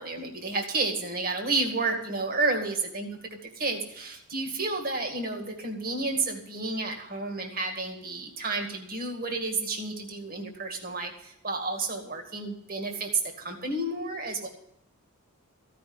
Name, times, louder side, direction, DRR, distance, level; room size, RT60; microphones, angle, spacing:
voice 1, 0.0-3.1 3.6-13.1 13.4-14.5, right 3 dB, 40° right, 3 dB, 2.1 m, -31 dB
15.0 x 5.9 x 9.6 m, 0.76 s
head